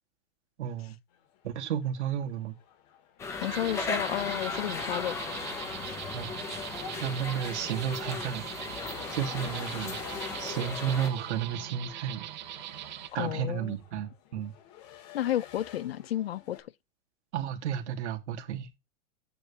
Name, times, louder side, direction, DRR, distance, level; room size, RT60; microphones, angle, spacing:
voice 1, 0.6-1.0 1.4-2.5 6.1-6.3 6.9-10.0 10.4-12.2 13.1-14.5 17.3-18.7, right 9 dB, 60° right, 2.8 m, -33 dB
sound 1, 1.1-16.6, left 9 dB, 30° left, 2.3 m, -49 dB
sound 2, 3.2-11.1, left 4 dB, 5° left, 0.9 m, -37 dB
voice 2, 3.4-5.2 5.9-6.0 13.2-13.7 15.1-16.6, left 12 dB, 50° left, 0.5 m, -31 dB
sound 3, 3.4-13.1, right 13 dB, 35° right, 0.8 m, -41 dB
9.3 x 9.3 x 3.4 m
supercardioid pair, 175°, 40 cm